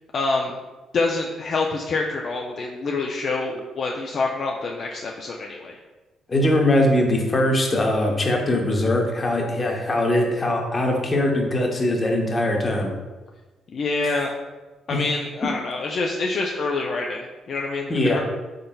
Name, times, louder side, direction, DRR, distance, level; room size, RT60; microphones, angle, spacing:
voice 1, 0.1-0.6 0.9-5.8 13.7-14.3 14.9-18.2, left 3 dB, 55° left, 0 dB, 0.3 m, -26 dB
voice 2, 6.3-12.9 14.0-14.3 14.9-15.0 15.4-15.5 17.9-18.2, left 1 dB, 30° left, 1 dB, 0.7 m, -21 dB
3.9 x 3.7 x 2.2 m, 1.2 s
cardioid pair, 90°, 0 cm